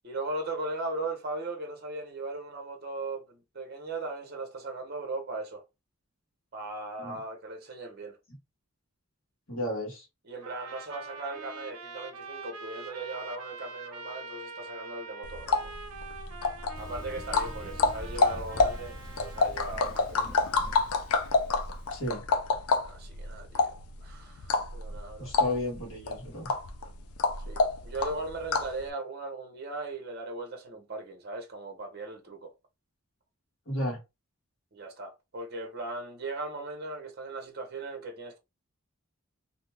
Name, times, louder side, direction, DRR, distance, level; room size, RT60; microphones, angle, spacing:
voice 1, 0.0-5.6 6.5-8.2 10.2-15.7 16.8-20.4 22.9-23.7 24.0-25.3 27.5-32.5 34.7-38.4, right 2 dB, 45° right, 0.7 m, -38 dB
voice 2, 9.5-10.0 21.9-22.2 25.2-26.5 33.7-34.0, left 1 dB, 65° left, 1.3 m, -33 dB
Trumpet, 10.4-19.5, right 3 dB, 80° right, 0.6 m, -44 dB
sound 1, 15.2-28.8, left 4 dB, 90° left, 0.4 m, -29 dB
Thunder, 16.7-22.1, equal, 5° left, 0.9 m, -45 dB
2.6 x 2.3 x 3.2 m
head